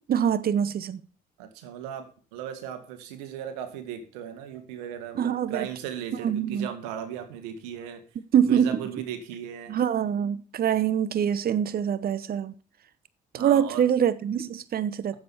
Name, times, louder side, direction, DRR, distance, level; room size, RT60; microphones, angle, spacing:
voice 1, 0.1-1.0 5.2-5.7 6.2-6.7 8.3-8.8 9.7-12.5 13.3-15.2, right 9 dB, 50° right, 0.9 m, -24 dB
voice 2, 1.4-8.0 8.4-9.8 13.3-13.8, right 9 dB, 90° right, 1.9 m, -37 dB
10.0 x 7.9 x 7.1 m
hypercardioid pair, 55°, 20 cm